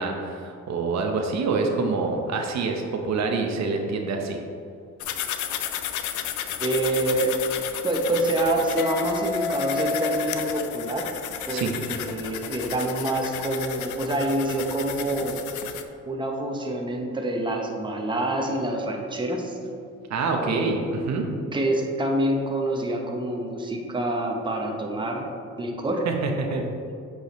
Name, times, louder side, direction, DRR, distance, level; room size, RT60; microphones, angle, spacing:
voice 1, 0.0-4.4 11.5-11.7 20.1-21.3 26.1-26.7, right 4 dB, 65° right, 3 dB, 0.8 m, -26 dB
sound 1, 5.0-15.8, left 9 dB, 80° left, 0.5 m, -33 dB
voice 2, 6.6-7.4 7.8-11.1 11.5-11.6 11.9-15.4 16.1-19.6 20.5-20.8 21.5-25.2 25.6-26.0, right 1 dB, 15° right, 1 dB, 0.8 m, -26 dB
Guitar, 8.8-11.6, left 5 dB, 40° left, 0.7 m, -31 dB
8.1 x 4.8 x 3.1 m, 2.5 s
cardioid pair, 90°, 30 cm